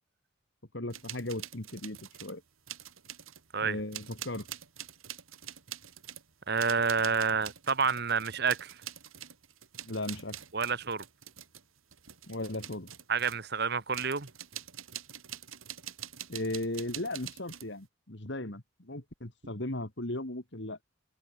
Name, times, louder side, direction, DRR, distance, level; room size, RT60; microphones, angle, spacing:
voice 1, 0.7-2.4 3.6-4.5 9.8-10.4 12.3-12.9 16.3-20.8, left 1 dB, 55° left, 2.4 m, -37 dB
sound 1, 0.9-2.4 2.7-3.5 3.9-13.5 13.9-17.7, right 11 dB, 80° right, 4.9 m, -45 dB
voice 2, 6.5-8.7 10.5-11.0 13.1-14.3, right 5 dB, 50° right, 1.3 m, -29 dB
head